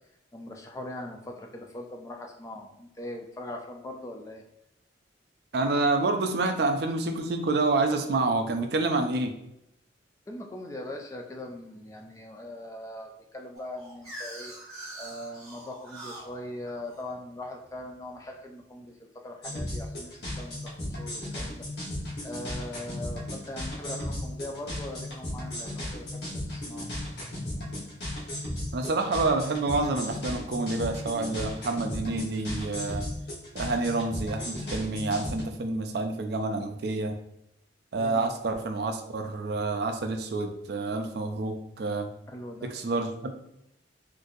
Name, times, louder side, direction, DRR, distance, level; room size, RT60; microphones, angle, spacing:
voice 1, 0.3-4.4 10.3-14.5 15.0-26.9 38.0-38.2 42.3-42.7, left 1 dB, 15° left, 2 dB, 0.3 m, -41 dB
voice 2, 5.5-9.3 28.7-33.0 33.5-37.1 37.9-42.1 42.6-43.3, right 3 dB, 55° right, 6 dB, 0.4 m, -28 dB
sound 1, 13.5-18.3, right 1 dB, ahead, 1.3 m, -44 dB
sound 2, 19.4-35.4, left 1 dB, 55° left, 1.1 m, -36 dB
3.8 x 2.6 x 2.6 m, 0.82 s
head